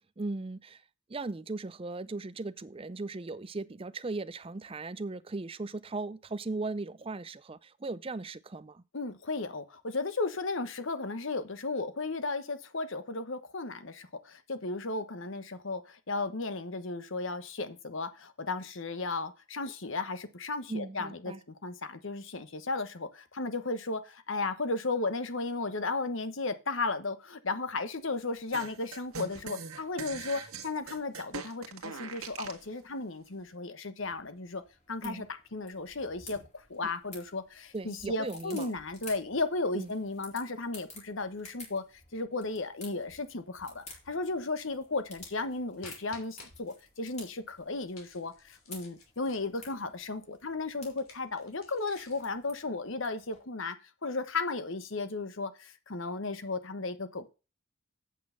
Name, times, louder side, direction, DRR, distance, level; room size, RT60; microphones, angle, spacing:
voice 1, 0.2-0.8 1.1-8.8 20.7-21.4 35.0-35.2 36.8-36.9 37.7-38.7 39.7-39.9, right 3 dB, 25° right, 0.5 m, -38 dB
voice 2, 8.9-34.6 34.9-35.3 35.5-41.8 42.1-53.7 54.0-57.3, left 3 dB, 60° left, 1.1 m, -35 dB
sound 1, 28.5-32.6, right 5 dB, 85° right, 1.7 m, -42 dB
sound 2, 34.0-53.4, left 3 dB, 30° left, 4.0 m, -53 dB
sound 3, 45.8-46.5 47.9-49.8 50.9-52.3, left 4 dB, 80° left, 3.1 m, -53 dB
8.4 x 6.4 x 5.7 m
head